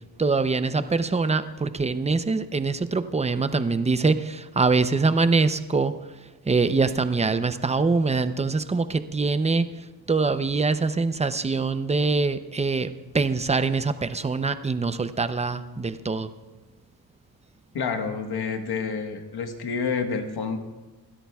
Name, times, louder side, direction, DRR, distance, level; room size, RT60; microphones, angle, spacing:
voice 1, 0.2-5.9 6.4-16.3, right 4 dB, 15° right, 11 dB, 0.6 m, -24 dB
voice 2, 17.7-20.6, left 5 dB, 75° left, 5 dB, 1.4 m, -28 dB
26.5 x 13.0 x 2.3 m, 1.2 s
cardioid pair, 105°, 38 cm